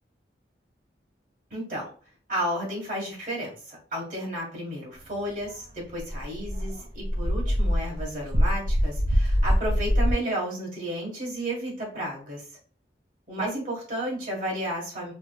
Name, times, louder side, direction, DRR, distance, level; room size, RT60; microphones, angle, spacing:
voice 1, 1.5-1.9 2.3-12.5 13.3-15.1, right 1 dB, 45° right, -2 dB, 1.6 m, -32 dB
Dog, 5.5-5.6 6.0-10.1, equal, 90° right, 1.9 m, -24 dB
6.0 x 2.1 x 2.3 m, 0.40 s
head